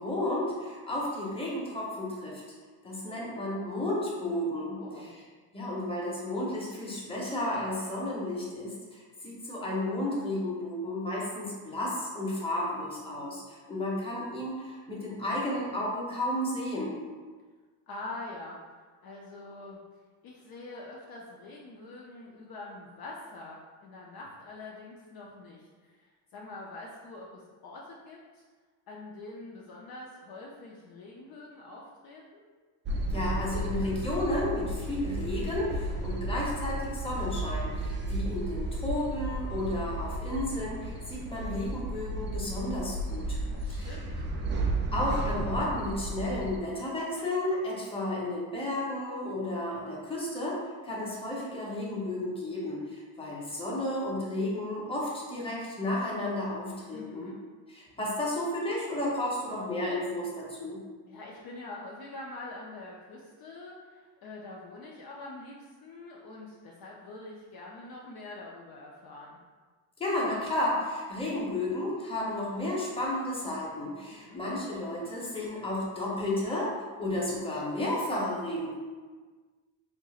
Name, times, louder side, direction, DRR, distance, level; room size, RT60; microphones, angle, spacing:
voice 1, 0.0-2.4 2.8-5.1 5.5-17.0 33.1-43.4 43.7-43.9 44.9-50.6 50.8-57.3 57.7-60.8 70.0-78.7, left 1 dB, 10° left, -5 dB, 0.9 m, -32 dB
voice 2, 4.8-5.1 17.9-19.8 20.2-28.4 28.9-32.4 43.4-44.3 56.9-57.4 61.1-69.4 74.1-74.4, left 2 dB, 50° left, -3 dB, 0.6 m, -45 dB
sound 1, 32.9-46.6, right 1 dB, 25° right, 0.3 m, -33 dB
4.5 x 2.8 x 2.4 m, 1.4 s
cardioid pair, 115°, 47 cm